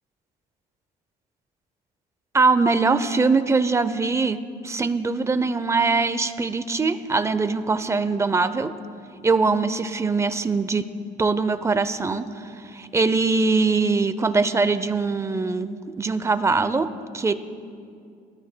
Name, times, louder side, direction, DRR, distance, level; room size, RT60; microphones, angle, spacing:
voice 1, 2.3-4.4 4.6-8.7 9.2-10.9 11.2-17.3, right 4 dB, 15° right, 13 dB, 0.5 m, -22 dB
21.0 x 13.0 x 2.2 m, 2.3 s
cardioid pair, 110°, 17 cm